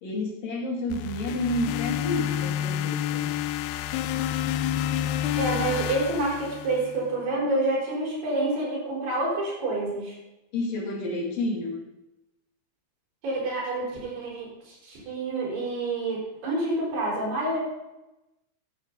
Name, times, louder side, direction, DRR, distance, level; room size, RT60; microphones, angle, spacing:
voice 1, 0.0-3.4 10.5-11.9, left 1 dB, 65° left, -2 dB, 4.0 m, -30 dB
sound 1, 0.9-7.1, left 11 dB, 90° left, 2.6 m, -29 dB
voice 2, 5.4-10.2 13.2-17.6, right 2 dB, 85° right, -4 dB, 6.5 m, -28 dB
14.0 x 10.5 x 4.0 m, 0.96 s
omnidirectional pair, 4.5 m